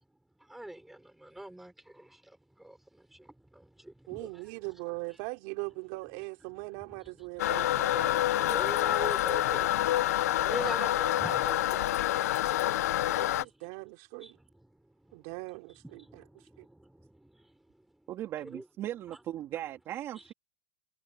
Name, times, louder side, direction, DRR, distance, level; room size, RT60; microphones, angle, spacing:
voice 1, 0.4-4.4 6.9-7.3 7.6-8.0 8.2-13.3 14.2-15.3 15.8-18.1 18.5-18.6, right 1 dB, 5° right, 3.9 m, -44 dB
voice 2, 4.1-8.5 13.1-14.4 15.1-16.2 16.6-16.7, right 28 dB, 50° right, 4.8 m, -41 dB
Toilet flush, 7.4-13.4, left 14 dB, 80° left, 0.7 m, -27 dB
voice 3, 18.1-20.3, right 12 dB, 30° right, 2.7 m, -38 dB
supercardioid pair, 145°, 8 cm